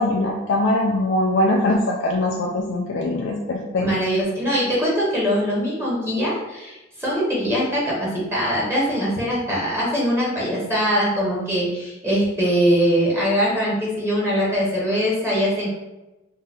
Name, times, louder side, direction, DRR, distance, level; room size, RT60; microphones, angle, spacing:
voice 1, 0.0-3.9, left 1 dB, 75° left, -1 dB, 0.4 m, -22 dB
voice 2, 3.8-15.7, equal, 15° right, -6 dB, 0.8 m, -22 dB
3.9 x 2.1 x 2.7 m, 1.0 s
head